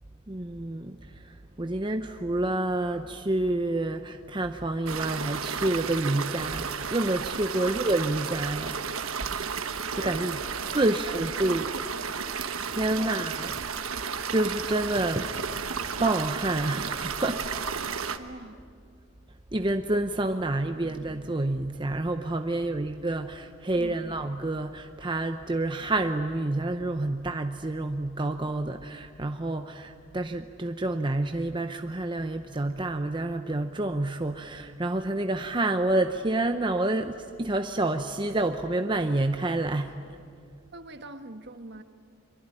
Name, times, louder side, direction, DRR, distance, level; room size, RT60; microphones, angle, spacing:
voice 1, 0.3-8.8 10.0-10.4 10.7-11.7 12.6-13.5 13.9-15.4 16.0-17.6 19.5-40.0, right 2 dB, 20° right, 6 dB, 0.7 m, -28 dB
sound 1, 4.9-18.2, right 6 dB, 80° right, 1.3 m, -33 dB
voice 2, 10.0-10.4 10.6-12.2 13.0-13.7 18.2-18.6 22.5-22.6 23.7-24.1 40.7-41.8, right 2 dB, 55° right, 8 dB, 1.4 m, -43 dB
24.5 x 23.5 x 9.9 m, 2.2 s
head